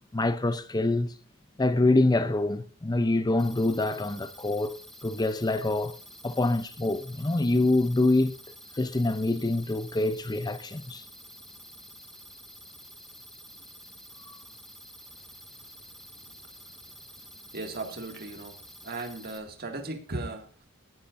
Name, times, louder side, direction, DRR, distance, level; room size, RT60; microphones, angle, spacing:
voice 1, 0.1-1.2 1.6-6.0 6.2-8.4 8.7-11.1 14.3-14.4, left 2 dB, 20° left, 0.5 m, -26 dB
sound 1, 3.4-19.4, equal, ahead, 2.0 m, -49 dB
voice 2, 17.5-18.6 18.8-20.7, right 2 dB, 45° right, 2.0 m, -37 dB
17.0 x 13.5 x 2.6 m
head